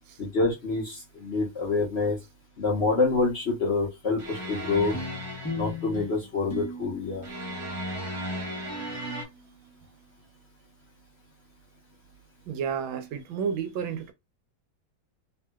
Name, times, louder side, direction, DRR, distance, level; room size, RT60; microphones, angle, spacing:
voice 1, 0.2-2.2 2.6-4.9 5.5-7.2, left 3 dB, 50° left, 0.8 m, -27 dB
sound 1, 4.2-5.9 7.2-9.3, right 1 dB, 55° right, 1.3 m, -35 dB
sound 2, 4.9-9.6, left 3 dB, 25° left, 0.3 m, -39 dB
voice 2, 12.5-14.1, right 7 dB, 80° right, 1.4 m, -31 dB
3.2 x 2.7 x 2.3 m
omnidirectional pair, 2.1 m